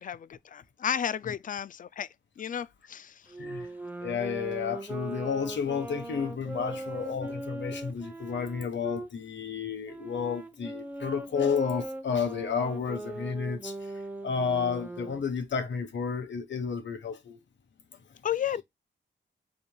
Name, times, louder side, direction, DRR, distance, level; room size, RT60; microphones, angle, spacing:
voice 1, 0.0-2.1 2.4-3.2 18.2-18.6, left 9 dB, 45° left, 0.4 m, -33 dB
Wind instrument woodwind instrument, 3.3-9.1 9.8-15.3, right 2 dB, 10° right, 0.8 m, -39 dB
voice 2, 3.4-3.7 4.0-13.9 14.2-17.4, left 6 dB, 70° left, 1.3 m, -31 dB
5.3 x 4.3 x 2.3 m
wide cardioid pair, 120°, 20 cm